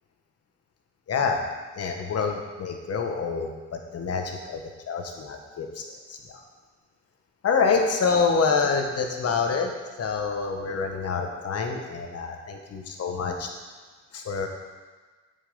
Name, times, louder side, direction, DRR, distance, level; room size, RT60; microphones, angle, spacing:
voice 1, 1.1-1.4 1.7-4.6 4.9-5.8 6.1-6.4 7.4-9.7 10.0-13.5 14.1-14.5, left 5 dB, 55° left, 3 dB, 1.4 m, -27 dB
8.2 x 5.7 x 5.4 m, 1.4 s
cardioid pair, 90°, 30 cm